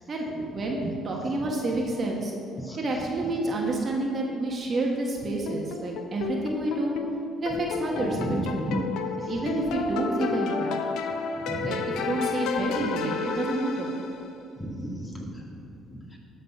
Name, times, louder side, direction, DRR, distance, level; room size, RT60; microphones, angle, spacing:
voice 1, 0.1-2.3 2.8-7.0 7.4-8.7 9.3-10.8 11.6-13.9, right 2 dB, 45° right, -1 dB, 1.4 m, -29 dB
sound 1, 5.5-14.3, left 5 dB, 75° left, 0.6 m, -32 dB
voice 2, 8.1-8.8 9.2-9.5 11.5-11.7 14.5-16.2, right 1 dB, 20° left, -2 dB, 2.2 m, -34 dB
12.5 x 4.2 x 5.7 m, 2.5 s
supercardioid pair, 65°, 0 cm